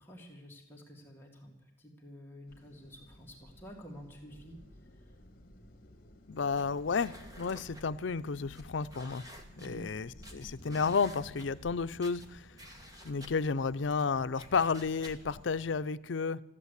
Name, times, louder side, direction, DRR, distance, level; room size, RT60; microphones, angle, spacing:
voice 1, 0.0-4.6 4.9-5.1 9.6-9.9, equal, 10° left, -2 dB, 2.2 m, -50 dB
sound 1, 2.5-15.8, left 1 dB, 50° left, 1.7 m, -56 dB
voice 2, 6.3-9.2 9.6-12.5 13.0-16.4, left 5 dB, 80° left, 13 dB, 0.5 m, -32 dB
sound 2, 6.3-15.5, equal, 20° right, 1.7 m, -53 dB
14.5 x 11.0 x 8.2 m, 0.94 s
head